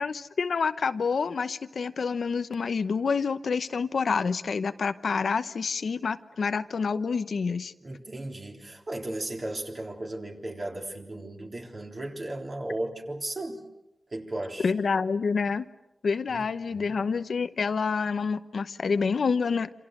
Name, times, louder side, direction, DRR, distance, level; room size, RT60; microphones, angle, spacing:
voice 1, 0.0-7.7 14.6-15.7 16.0-19.7, left 5 dB, 75° left, 11 dB, 0.9 m, -28 dB
voice 2, 7.8-13.6 14.1-14.7 16.3-16.4 16.7-17.0, right 1 dB, 40° right, 1 dB, 3.8 m, -35 dB
27.5 x 27.0 x 6.7 m, 0.93 s
wide cardioid pair, 115°, 0 cm